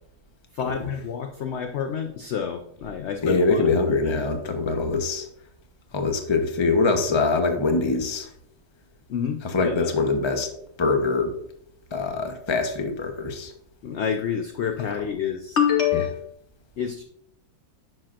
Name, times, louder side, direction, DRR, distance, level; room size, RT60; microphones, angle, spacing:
voice 1, 0.5-3.7 4.0-4.2 9.1-9.9 13.8-16.3 16.8-17.0, left 8 dB, 65° left, 5 dB, 0.7 m, -27 dB
voice 2, 3.2-5.3 5.9-8.3 9.5-10.5 10.8-11.4 11.9-13.5, left 3 dB, 25° left, 5 dB, 0.7 m, -23 dB
10.0 x 6.6 x 2.5 m, 0.72 s
omnidirectional pair, 1.6 m